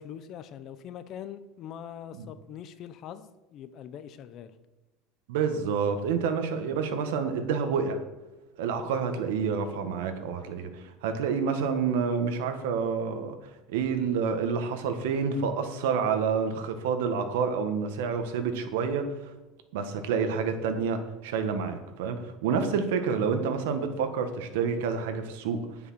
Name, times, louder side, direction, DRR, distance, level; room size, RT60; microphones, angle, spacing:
voice 1, 0.0-4.5 23.1-23.2, left 9 dB, 45° left, 12 dB, 0.8 m, -43 dB
voice 2, 5.3-8.0 8.6-13.3 13.7-19.3 19.7-25.9, right 6 dB, 90° right, 7 dB, 1.5 m, -28 dB
9.9 x 7.6 x 6.3 m, 1.1 s
cardioid pair, 150°, 0 cm